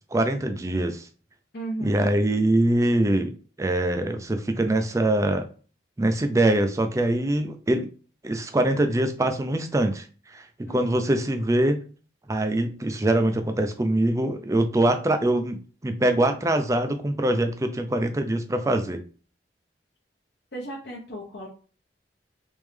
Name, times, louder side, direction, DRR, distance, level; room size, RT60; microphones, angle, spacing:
voice 1, 0.1-1.1 1.8-3.3 3.6-5.5 6.0-7.9 8.2-11.8 12.3-15.6 15.8-19.0, right 1 dB, 15° right, 7 dB, 0.4 m, -23 dB
voice 2, 1.5-2.1 10.7-11.0 20.5-21.5, right 1 dB, 60° left, -4 dB, 0.9 m, -35 dB
3.5 x 3.1 x 3.2 m, 0.38 s
head